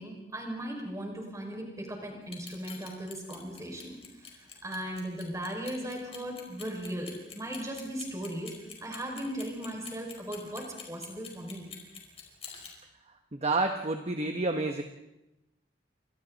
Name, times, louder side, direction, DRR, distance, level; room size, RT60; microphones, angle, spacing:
voice 1, 0.0-4.0 4.4-8.5 8.8-11.7, right 1 dB, 20° right, 0 dB, 5.6 m, -37 dB
Clock, 2.2-12.7, left 7 dB, 35° left, 4.8 m, -46 dB
voice 2, 13.3-14.8, right 2 dB, 40° right, 5 dB, 1.1 m, -29 dB
29.0 x 25.5 x 4.1 m, 0.94 s
head